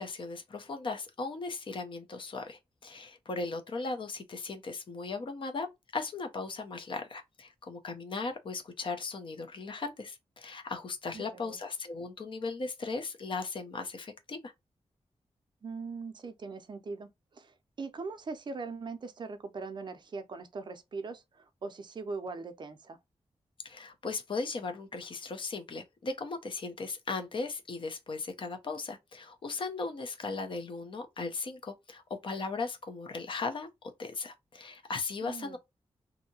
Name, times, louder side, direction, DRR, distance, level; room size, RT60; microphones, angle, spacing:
voice 1, 0.0-14.5 23.6-33.7 34.0-35.6, left 3 dB, 50° left, 0.6 m, -37 dB
voice 2, 11.1-11.6 15.6-23.0 35.2-35.6, right 4 dB, 40° right, 0.5 m, -41 dB
2.7 x 2.6 x 2.7 m
wide cardioid pair, 175°, 11 cm